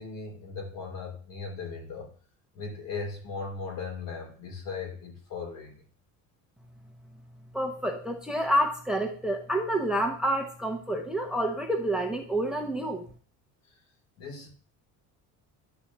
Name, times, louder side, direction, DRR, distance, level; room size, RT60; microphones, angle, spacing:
voice 1, 0.0-2.1 2.5-5.7 14.2-14.5, left 4 dB, 65° left, 2 dB, 3.4 m, -38 dB
voice 2, 7.5-13.1, right 1 dB, ahead, 4 dB, 0.8 m, -28 dB
11.0 x 4.2 x 7.1 m, 0.43 s
cardioid pair, 165°, 36 cm